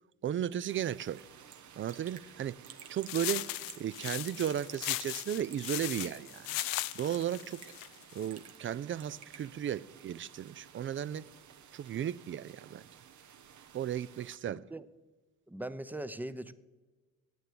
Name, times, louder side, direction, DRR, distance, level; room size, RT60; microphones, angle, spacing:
voice 1, 0.2-1.2 1.8-2.6 2.9-3.5 3.8-6.6 6.9-7.6 8.1-11.3 11.7-12.8 13.7-14.6, right 10 dB, 35° right, 0.4 m, -35 dB
sound 1, 0.7-14.4, right 8 dB, 55° right, 1.0 m, -56 dB
Raindrop / Drip, 1.2-1.3 1.5-1.6 1.9-2.3 2.6-3.2 3.7-4.0 4.4-5.0 5.3-5.9 6.4-6.7 7.4-7.8 8.2-8.7 9.0-9.4, right 9 dB, 80° right, 1.1 m, -51 dB
sound 2, 3.1-8.3, left 18 dB, 75° left, 0.5 m, -38 dB
voice 2, 14.5-14.9 15.5-16.5, right 1 dB, 5° right, 0.7 m, -40 dB
10.5 x 9.1 x 7.7 m
supercardioid pair, 60°, 34 cm